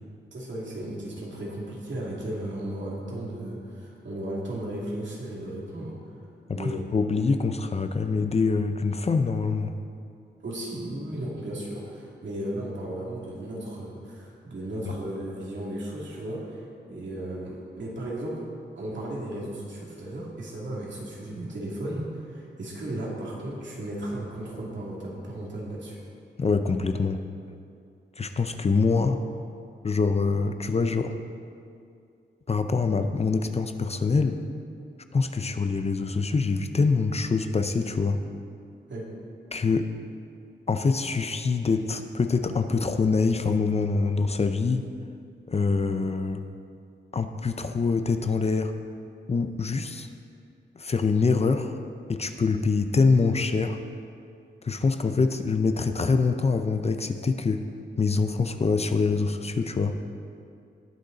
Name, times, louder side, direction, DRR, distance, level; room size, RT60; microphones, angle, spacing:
voice 1, 0.3-6.0 6.5-6.9 10.4-18.4 18.8-26.0 38.9-39.1, right 1 dB, 75° right, -4 dB, 2.6 m, -35 dB
voice 2, 6.5-9.7 14.9-15.0 26.4-27.2 28.2-29.2 29.8-31.1 32.5-34.4 35.1-38.2 39.5-39.9 40.7-44.9 45.5-46.4 47.1-48.7 49.3-50.1 50.8-51.8 52.1-53.8 54.6-57.6 58.0-60.0, left 4 dB, 35° left, 8 dB, 0.5 m, -25 dB
19.0 x 6.5 x 4.0 m, 2.4 s
wide cardioid pair, 145°, 19 cm